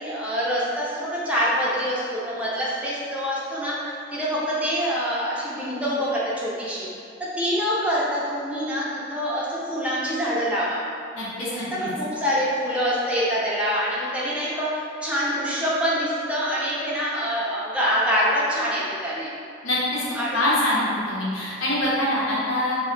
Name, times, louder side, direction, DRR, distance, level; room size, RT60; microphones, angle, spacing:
voice 1, 0.0-6.9 7.4-10.8 11.4-19.3 20.1-20.5, equal, 5° right, -7 dB, 0.5 m, -25 dB
voice 2, 11.1-11.9 19.6-20.0 20.3-22.8, left 1 dB, 85° left, -7 dB, 0.7 m, -24 dB
2.2 x 2.1 x 3.7 m, 2.3 s
head